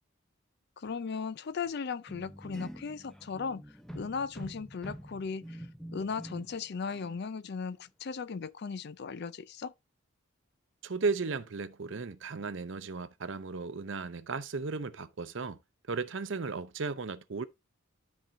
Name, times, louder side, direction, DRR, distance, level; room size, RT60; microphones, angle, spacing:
voice 1, 0.8-3.6 3.9-5.7 5.9-9.7, left 5 dB, 50° left, 0.4 m, -37 dB
sound 1, 2.1-6.6 6.9-7.2, equal, ahead, 0.5 m, -46 dB
voice 2, 10.8-15.6 15.9-17.4, right 4 dB, 60° right, 0.6 m, -35 dB
12.5 x 4.5 x 2.6 m
head